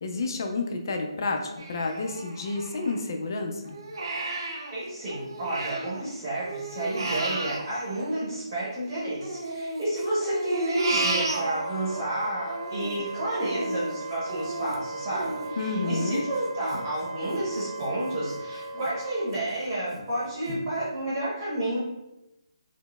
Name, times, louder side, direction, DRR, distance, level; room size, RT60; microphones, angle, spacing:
voice 1, 0.0-3.8 15.6-16.2, left 3 dB, 45° left, 3 dB, 0.4 m, -30 dB
Crying sobbing, 1.6-3.2 3.6-6.0 6.3-8.8 9.2-12.0 12.4-17.9 18.3-18.4 18.8-19.4 19.9-20.0 20.5-20.6, right 2 dB, 55° right, 0.5 m, -34 dB
voice 2, 4.7-21.8, right 1 dB, 30° right, -8 dB, 0.9 m, -31 dB
Wind instrument woodwind instrument, 10.8-19.3, right 2 dB, 5° right, 1.1 m, -38 dB
3.8 x 2.0 x 2.2 m, 0.93 s
hypercardioid pair, 165°, 3 cm